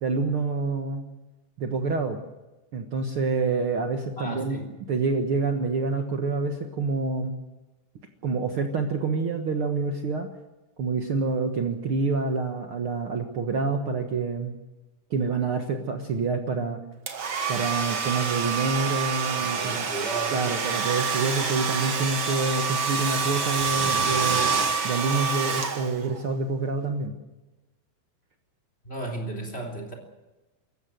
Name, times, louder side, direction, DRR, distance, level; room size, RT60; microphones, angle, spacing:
voice 1, 0.0-1.0 1.6-2.2 2.7-4.6 4.9-7.3 8.2-10.3 10.8-14.5 15.1-16.8 17.5-19.9 20.3-24.5 24.8-27.1, right 4 dB, 80° right, 4 dB, 1.2 m, -27 dB
voice 2, 4.2-4.7 19.4-20.6 28.8-29.9, right 2 dB, 15° left, 4 dB, 3.4 m, -34 dB
Domestic sounds home sounds, 17.1-26.2, right 5 dB, 45° right, 1.7 m, -27 dB
26.5 x 15.0 x 7.9 m, 1.1 s
omnidirectional pair, 4.8 m